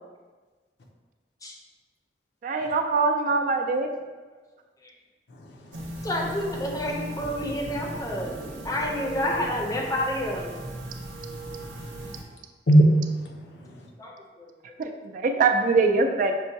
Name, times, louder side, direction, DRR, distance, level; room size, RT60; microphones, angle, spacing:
voice 1, 2.4-3.9 14.8-16.3, right 4 dB, 45° right, 0.3 m, -23 dB
voice 2, 5.3-6.3 12.3-12.4 12.7-13.9, right 1 dB, 70° left, 0.6 m, -23 dB
sound 1, 5.7-12.2, right 1 dB, 80° right, 0.7 m, -37 dB
voice 3, 6.0-8.3 8.6-10.6 14.0-14.5, left 1 dB, 20° left, 0.5 m, -29 dB
6.1 x 2.2 x 2.6 m
head